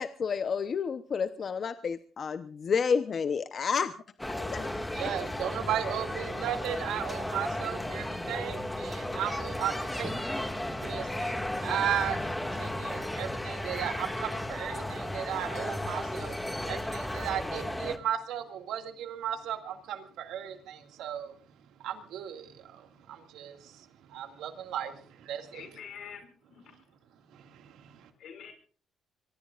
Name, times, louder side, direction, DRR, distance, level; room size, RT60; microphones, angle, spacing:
voice 1, 0.0-3.9 4.3-4.7, left 6 dB, 50° left, 10 dB, 0.8 m, -30 dB
sound 1, 4.2-18.0, left 1 dB, 10° left, 2.0 m, -34 dB
voice 2, 4.7-10.3 10.8-16.4 16.6-21.4 21.8-25.6 27.3-28.1, right 10 dB, 85° right, 6 dB, 2.1 m, -36 dB
voice 3, 25.5-26.9 28.2-28.5, left 7 dB, 70° left, 6 dB, 5.9 m, -46 dB
25.0 x 23.0 x 2.5 m, 0.43 s
cardioid pair, 90°, 0 cm